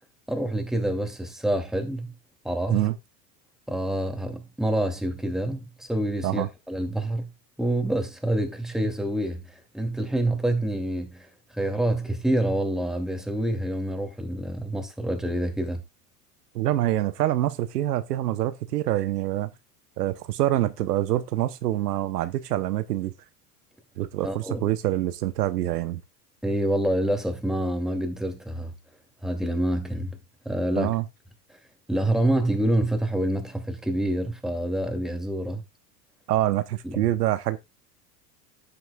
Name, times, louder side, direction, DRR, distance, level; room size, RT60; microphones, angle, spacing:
voice 1, 0.3-2.1 2.4-2.9 3.7-7.3 7.6-11.3 11.6-15.8 24.2-24.7 26.4-28.7 29.2-30.2 30.5-30.9 31.9-35.6 36.8-37.0, right 1 dB, ahead, 2.4 m, -27 dB
voice 2, 16.5-19.5 20.0-23.1 24.0-26.0 30.8-31.0 36.3-37.6, right 14 dB, 80° right, 0.9 m, -25 dB
16.0 x 6.0 x 2.3 m
hypercardioid pair, 90°, 47 cm